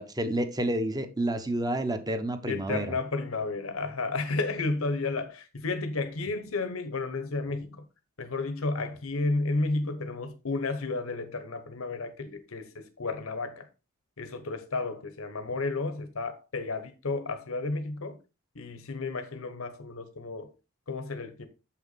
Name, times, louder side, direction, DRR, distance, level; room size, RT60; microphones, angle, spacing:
voice 1, 0.0-2.9, right 1 dB, 20° right, 1.0 m, -29 dB
voice 2, 2.5-7.8 8.2-13.7 14.2-18.2 18.5-20.5 20.9-21.5, left 3 dB, 85° left, 1.0 m, -32 dB
7.2 x 5.7 x 4.1 m
head